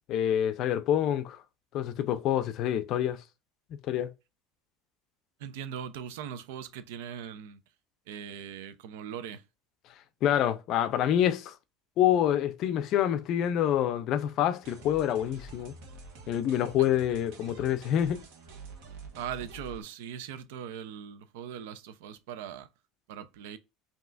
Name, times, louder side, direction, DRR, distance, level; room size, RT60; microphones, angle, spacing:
voice 1, 0.1-1.4 1.7-3.2 3.9-4.1 10.2-11.5 12.0-15.7 16.3-18.2, left 10 dB, 40° left, 0.4 m, -27 dB
voice 2, 5.4-7.6 8.1-9.4 19.2-22.7 23.1-23.6, right 9 dB, 85° right, 0.6 m, -40 dB
sound 1, 14.6-19.8, right 2 dB, 60° right, 1.4 m, -48 dB
5.5 x 2.8 x 2.5 m
cardioid pair, 165°, 0 cm